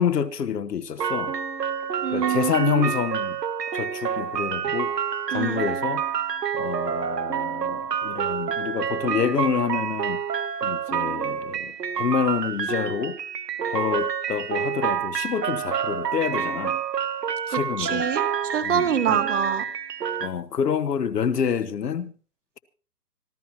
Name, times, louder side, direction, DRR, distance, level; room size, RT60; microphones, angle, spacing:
voice 1, 0.0-1.3 2.1-3.4 3.7-4.9 5.3-6.0 6.5-10.2 10.6-13.2 13.7-16.8 17.5-18.0 18.6-19.2 20.2-22.1, left 7 dB, 80° left, 1.5 m, -27 dB
sound 1, 1.0-20.3, right 8 dB, 85° right, 1.4 m, -28 dB
voice 2, 2.0-2.9 5.3-5.6 17.5-19.6, right 8 dB, 50° right, 1.7 m, -26 dB
25.5 x 13.5 x 2.9 m
hypercardioid pair, 170°, 48 cm